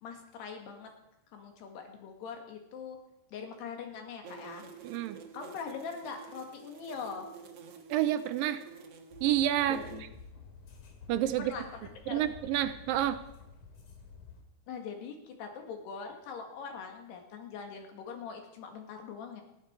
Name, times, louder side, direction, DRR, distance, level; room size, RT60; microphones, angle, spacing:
voice 1, 0.0-0.9 1.3-3.0 3.3-4.7 5.3-7.3 9.7-10.1 11.4-12.3 14.7-19.4, left 6 dB, 90° left, 4 dB, 4.2 m, -42 dB
sound 1, 4.2-10.0, right 6 dB, 60° right, 1.6 m, -49 dB
voice 2, 4.8-5.2 7.9-8.6 9.2-9.8 11.1-11.5 12.1-13.2, right 12 dB, 75° right, 11 dB, 2.2 m, -29 dB
sound 2, 9.1-14.4, left 5 dB, 55° left, 3.3 m, -51 dB
19.5 x 14.5 x 4.7 m, 0.87 s
omnidirectional pair, 4.6 m